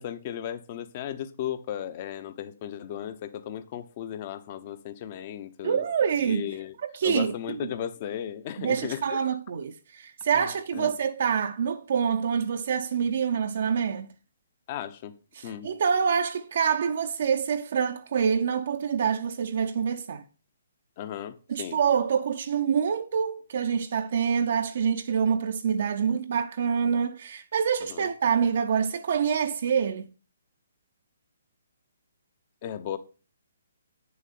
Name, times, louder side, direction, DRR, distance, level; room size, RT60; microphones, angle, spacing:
voice 1, 0.0-5.8 6.2-6.8 7.0-9.2 10.3-10.9 14.7-15.1 15.4-15.7 21.0-21.8 27.9-28.1 32.6-33.0, left 10 dB, 40° left, 1.1 m, -35 dB
voice 2, 5.6-6.5 6.9-7.3 8.6-14.1 15.4-20.2 21.5-30.0, right 7 dB, 55° right, 0.7 m, -26 dB
9.2 x 7.0 x 4.3 m
figure-of-eight pair, 135°, 0 cm